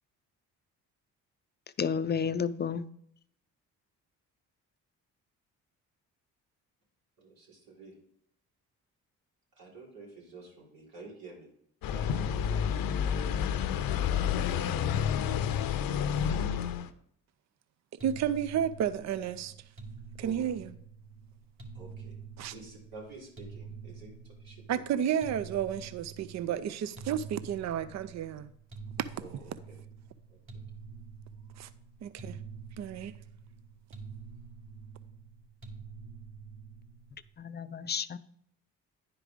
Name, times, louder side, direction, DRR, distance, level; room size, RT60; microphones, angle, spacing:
voice 1, 1.8-2.8 37.4-38.2, left 6 dB, 30° left, 0.5 m, -31 dB
voice 2, 7.2-7.9 9.6-11.5 11.9-13.2 20.2-20.4 21.7-22.1 22.5-24.8 29.2-29.8 30.3-30.4, right 3 dB, 75° right, 3.6 m, -50 dB
sound 1, 11.8-16.9, left 8 dB, 75° left, 0.7 m, -29 dB
sound 2, 18.0-37.3, right 5 dB, 35° right, 2.2 m, -47 dB
voice 3, 18.0-19.5 20.2-20.7 22.4-22.5 24.7-28.5 29.0-29.1 31.6-31.7 32.0-32.4 32.8-33.1, right 9 dB, 50° right, 0.5 m, -32 dB
10.0 x 4.9 x 5.1 m
supercardioid pair, 65°, 35 cm